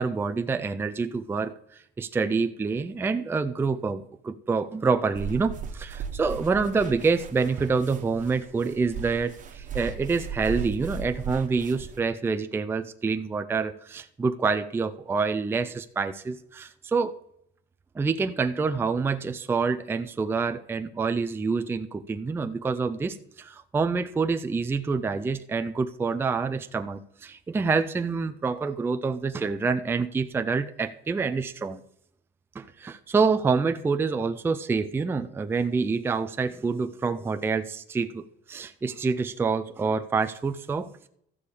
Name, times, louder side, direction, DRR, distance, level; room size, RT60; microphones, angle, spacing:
voice 1, 0.0-17.2 17.9-31.8 32.6-41.1, right 4 dB, 10° right, 8 dB, 0.4 m, -27 dB
sound 1, 5.1-12.0, right 6 dB, 35° right, 1.2 m, -37 dB
13.5 x 4.9 x 8.4 m, 0.71 s
cardioid pair, 170°, 21 cm